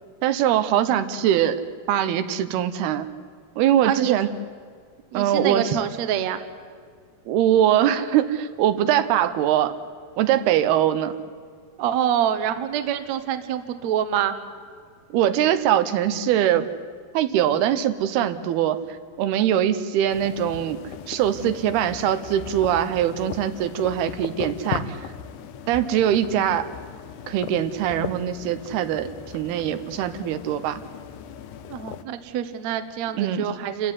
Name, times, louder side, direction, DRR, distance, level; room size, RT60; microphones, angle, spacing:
voice 1, 0.2-1.6 1.9-3.1 3.6-4.3 5.1-5.7 7.3-9.7 10.2-11.1 15.1-16.7 17.1-18.8 19.2-20.8 21.1-24.9 25.7-26.7 27.3-29.1 29.3-30.8 33.2-33.4, right 10 dB, 85° right, 11 dB, 3.0 m, -22 dB
voice 2, 3.8-4.2 5.1-6.4 11.8-14.4 31.7-33.9, right 10 dB, 60° right, 10 dB, 2.0 m, -26 dB
sound 1, 20.1-32.0, left 8 dB, 70° left, 2.1 m, -37 dB
29.0 x 15.5 x 9.6 m, 2.1 s
omnidirectional pair, 4.4 m